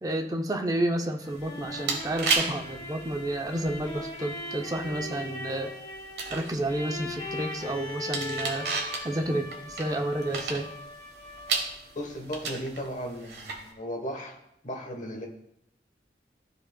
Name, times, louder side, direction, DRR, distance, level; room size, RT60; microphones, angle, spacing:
voice 1, 0.0-5.7 6.3-8.7 9.0-10.7, right 1 dB, 20° right, 4 dB, 0.5 m, -30 dB
sound 1, 1.0-11.9, left 2 dB, 25° left, 1.7 m, -39 dB
sound 2, 1.3-13.7, right 4 dB, 75° right, 1.3 m, -35 dB
voice 2, 11.9-14.4 14.6-15.3, equal, 45° left, 2 dB, 1.1 m, -36 dB
13.0 x 4.8 x 2.2 m, 0.78 s
head